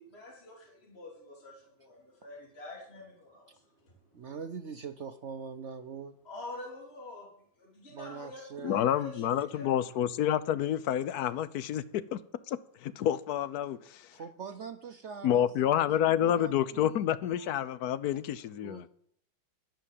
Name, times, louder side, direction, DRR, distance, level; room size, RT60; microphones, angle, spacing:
voice 1, 0.0-3.5 3.8-3.9 6.3-7.3 7.6-9.7 17.4-17.5, left 2 dB, 30° left, -1 dB, 3.6 m, -46 dB
voice 2, 4.1-6.2 7.9-8.8 14.1-16.9 18.6-18.9, right 6 dB, 75° right, 10 dB, 0.6 m, -43 dB
voice 3, 8.6-12.2 12.5-14.0 15.2-18.8, left 10 dB, 65° left, 17 dB, 1.0 m, -29 dB
11.5 x 10.5 x 7.6 m, 0.65 s
omnidirectional pair, 2.2 m